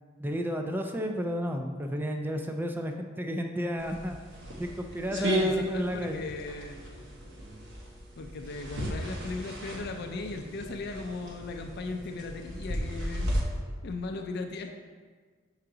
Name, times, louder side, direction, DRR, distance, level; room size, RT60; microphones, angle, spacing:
voice 1, 0.2-4.2 4.6-6.2, equal, 10° right, 4 dB, 0.3 m, -32 dB
sound 1, 3.8-13.4, equal, 65° right, 1.0 m, -35 dB
voice 2, 5.1-6.8 8.2-13.3 13.8-14.7, left 3 dB, 55° left, 5 dB, 0.4 m, -37 dB
5.6 x 4.8 x 3.8 m, 1.5 s
head